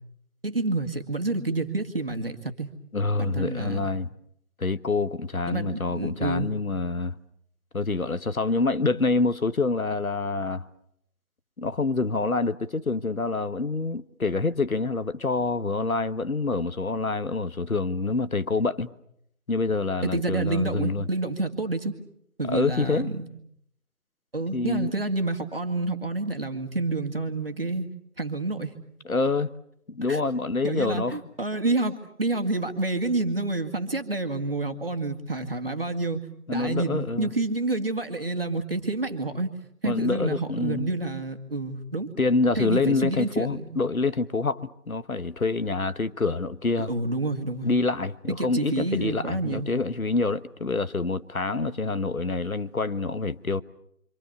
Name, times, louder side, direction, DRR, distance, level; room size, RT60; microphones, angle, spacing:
voice 1, 0.4-2.7 3.2-3.9 5.5-6.5 20.0-21.9 22.4-23.2 24.3-27.9 28.2-28.7 30.1-30.2 30.6-36.2 36.5-39.5 39.8-42.1 42.6-43.8 46.8-47.7 48.3-49.7, right 2 dB, 40° right, 2.3 m, -28 dB
voice 2, 2.9-4.1 4.6-7.2 7.7-10.7 11.6-18.9 19.5-21.1 22.5-23.1 24.5-24.9 29.0-29.5 29.9-31.2 36.5-37.3 39.8-40.9 42.2-46.9 47.6-53.6, left 3 dB, 65° left, 1.3 m, -26 dB
26.5 x 26.5 x 6.9 m
figure-of-eight pair, 175°, 46 cm